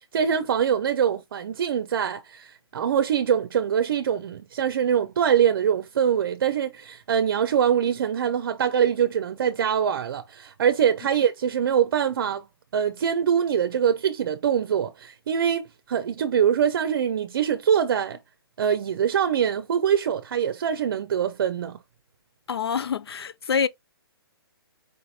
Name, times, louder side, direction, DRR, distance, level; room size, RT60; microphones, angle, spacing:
voice 1, 0.0-12.5 12.7-18.2 18.6-21.8, right 8 dB, 60° right, 0.6 m, -24 dB
voice 2, 22.5-23.7, left 6 dB, 80° left, 0.6 m, -26 dB
4.7 x 3.1 x 2.7 m
hypercardioid pair, 145°, 13 cm